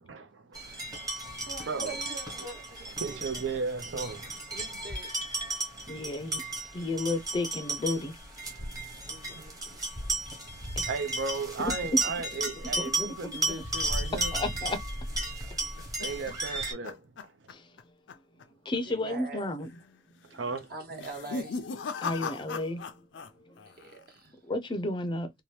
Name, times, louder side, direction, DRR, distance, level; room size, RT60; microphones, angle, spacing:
voice 1, 0.1-2.0 3.0-4.8 5.7-6.4 8.5-9.6 10.0-14.3 16.0-17.5 20.3-20.7, right 4 dB, 85° right, 0.6 m, -37 dB
sound 1, 0.5-16.7, right 2 dB, 20° right, 1.0 m, -34 dB
voice 2, 1.4-3.2 4.5-5.1 9.1-10.3 18.8-19.4 20.7-21.6 23.7-24.4, right 3 dB, 55° right, 1.1 m, -44 dB
voice 3, 5.9-6.4 6.7-8.2 10.8-10.9 11.6-11.7 12.8-13.1 13.5-13.6 14.3-14.8 17.5-17.7 18.6-19.7 22.0-22.9 23.5-23.6 24.5-25.3, left 2 dB, 25° left, 0.4 m, -32 dB
sound 2, 15.3-17.8 18.1-18.4 18.7-18.8 19.6-20.0 20.9-23.3 23.6-24.1, left 4 dB, 80° left, 0.5 m, -38 dB
2.7 x 2.2 x 3.1 m
head